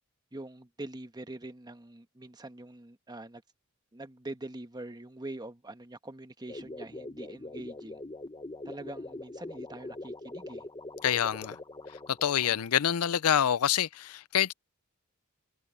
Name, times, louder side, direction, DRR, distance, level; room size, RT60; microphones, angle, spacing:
voice 1, 0.3-3.4 3.9-8.0 8.6-10.7 12.4-12.7, right 2 dB, 20° right, 1.2 m, -44 dB
sound 1, 6.5-12.6, left 2 dB, 20° left, 1.0 m, -43 dB
voice 2, 11.0-11.6 12.1-14.5, left 9 dB, 75° left, 0.5 m, -26 dB
head